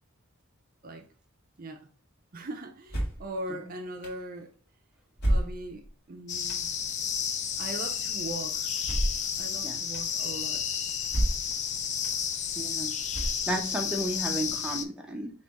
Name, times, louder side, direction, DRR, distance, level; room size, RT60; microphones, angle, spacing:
voice 1, 2.3-4.5 5.3-6.7 7.3-8.7 9.4-10.6, right 1 dB, 40° right, 0.5 m, -40 dB
sound 1, 2.9-3.3 4.0-4.1 5.2-5.9 6.5-6.6 8.8-9.3 9.9-10.0 11.1-11.6 12.0-12.1 13.1-13.7, right 1 dB, 50° left, 1.5 m, -29 dB
sound 2, 6.3-14.8, left 7 dB, 35° left, 0.4 m, -32 dB
voice 2, 12.6-12.9 13.5-15.3, right 1 dB, 5° right, 0.7 m, -33 dB
4.2 x 3.0 x 3.4 m
head